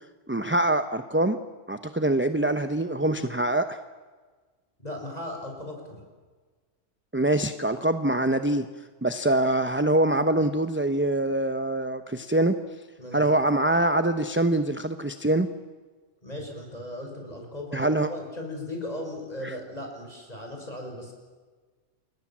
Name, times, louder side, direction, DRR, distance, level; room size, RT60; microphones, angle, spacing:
voice 1, 0.3-1.4 1.7-3.8 7.1-8.6 9.0-12.5 13.1-15.5 17.7-18.1 19.4-19.5, right 1 dB, 10° right, 9 dB, 0.8 m, -24 dB
voice 2, 4.8-5.9 13.0-13.2 16.2-21.1, left 1 dB, 30° left, 1 dB, 6.4 m, -37 dB
29.0 x 21.5 x 7.4 m, 1.4 s
omnidirectional pair, 1.3 m